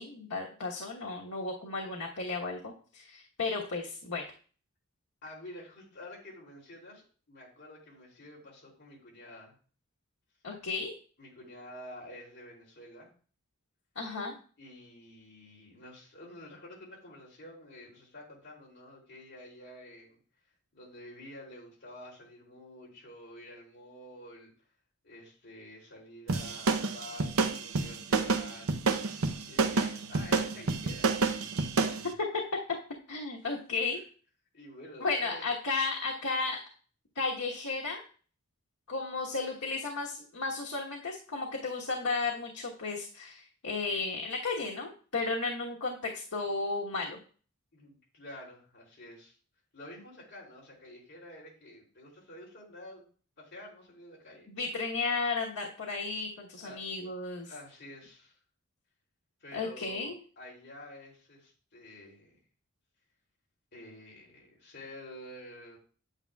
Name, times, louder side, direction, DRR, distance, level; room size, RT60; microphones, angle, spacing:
voice 1, 0.0-4.2 10.4-10.9 13.9-14.3 32.2-32.4 33.1-34.0 35.0-36.6 37.1-38.0 38.9-47.2 54.5-57.5 59.5-60.2, left 3 dB, 90° left, -3 dB, 1.3 m, -34 dB
voice 2, 5.2-9.5 11.2-13.1 14.6-20.2 20.7-24.5 25.0-28.7 29.0-29.2 29.5-31.1 34.5-35.5 47.7-49.4 49.7-53.0 53.4-54.5 56.6-56.8 57.4-58.4 59.4-62.4 63.7-65.8, left 1 dB, 50° left, -3 dB, 3.0 m, -49 dB
sound 1, 26.3-32.0, right 4 dB, 70° right, 0.7 m, -28 dB
8.8 x 8.3 x 2.3 m, 0.40 s
head